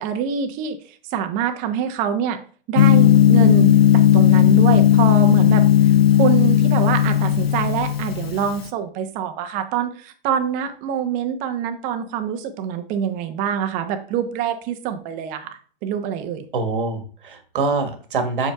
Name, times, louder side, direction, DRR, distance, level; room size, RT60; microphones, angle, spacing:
voice 1, 0.0-2.4 2.7-16.4, right 8 dB, 25° right, 7 dB, 0.9 m, -25 dB
Gong, 2.8-8.6, left 10 dB, 90° left, 0.5 m, -15 dB
voice 2, 16.5-18.5, right 3 dB, 60° right, 7 dB, 1.5 m, -24 dB
7.6 x 6.4 x 2.3 m, 0.42 s
figure-of-eight pair, 120°, 29 cm